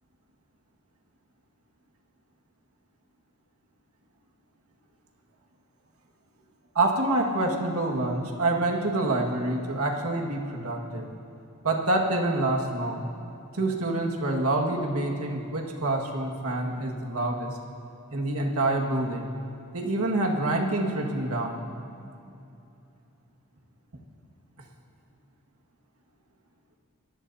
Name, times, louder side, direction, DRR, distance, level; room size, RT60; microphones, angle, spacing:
voice 1, 6.8-11.1 11.6-13.0 13.5-17.6 18.1-19.3 19.7-21.6, right 2 dB, 75° right, 0 dB, 1.9 m, -27 dB
25.5 x 18.5 x 2.8 m, 2.7 s
head